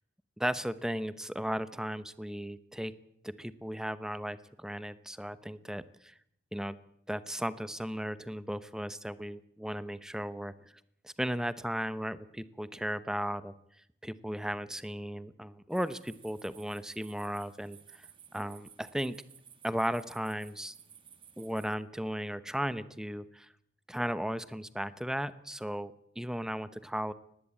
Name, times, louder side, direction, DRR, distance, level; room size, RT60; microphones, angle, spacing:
voice 1, 0.4-2.9 3.2-6.1 6.5-6.8 7.1-10.7 11.0-13.5 14.0-18.1 18.3-19.2 19.6-20.7 21.4-23.5 23.9-27.1, equal, 5° right, 15 dB, 0.8 m, -36 dB
sound 1, 15.7-21.7, right 8 dB, 30° right, 1.6 m, -56 dB
20.0 x 15.5 x 8.8 m, 0.72 s
head